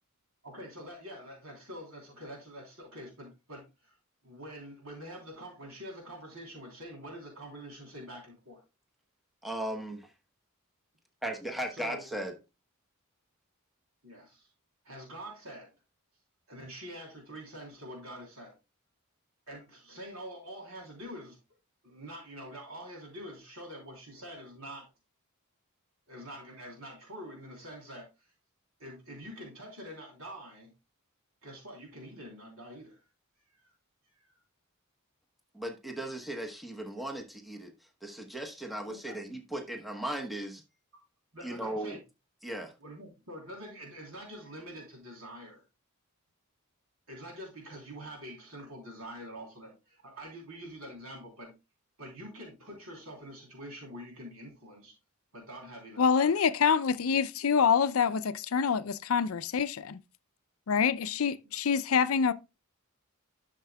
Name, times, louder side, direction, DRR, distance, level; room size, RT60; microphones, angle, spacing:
voice 1, 0.4-4.0 4.2-8.6 11.7-12.3 14.0-14.5 14.8-15.7 16.5-18.5 19.5-21.4 21.8-24.9 26.1-28.3 28.8-30.7 31.4-33.0 33.5-33.7 34.1-34.3 38.9-39.4 41.3-42.0 42.8-45.6 47.1-51.5 52.0-54.9 55.3-56.4 61.4-61.6, equal, 75° right, 3.4 m, -46 dB
voice 2, 9.4-10.1 11.2-12.3 35.5-37.7 38.0-40.6 41.4-42.0 42.4-42.7, right 1 dB, ahead, 0.9 m, -37 dB
voice 3, 56.0-60.0 60.7-62.3, left 6 dB, 70° left, 0.5 m, -26 dB
11.5 x 6.5 x 2.3 m
head